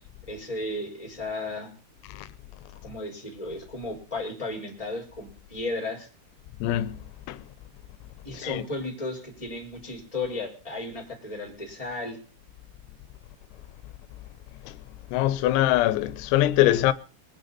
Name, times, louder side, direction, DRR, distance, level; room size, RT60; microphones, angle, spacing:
voice 1, 0.3-1.7 2.8-6.1 8.2-12.2, left 2 dB, 5° left, 4.0 m, -34 dB
voice 2, 6.6-7.0 7.3-7.4 8.4-8.6 14.7-14.8 15.1-16.9, left 14 dB, 90° left, 3.6 m, -23 dB
23.0 x 10.0 x 4.2 m
omnidirectional pair, 5.8 m